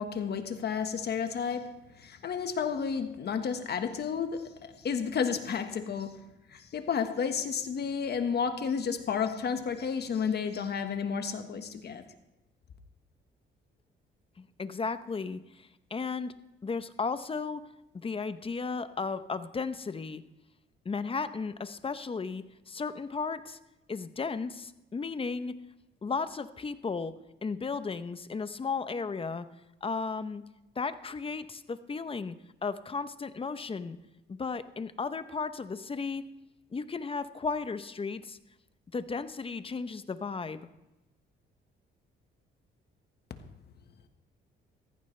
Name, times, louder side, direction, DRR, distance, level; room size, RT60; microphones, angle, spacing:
voice 1, 0.0-6.2 6.5-12.0, left 6 dB, 55° left, 1.4 m, -32 dB
voice 2, 14.4-16.3 16.6-17.7 17.9-20.2 20.8-23.6 23.9-25.6 26.0-27.1 27.4-29.5 29.8-30.4 30.8-32.3 32.6-34.0 34.3-36.2 36.7-38.4 38.9-40.6, left 4 dB, 30° left, 0.8 m, -35 dB
15.0 x 15.0 x 3.3 m
cardioid pair, 90°, 20 cm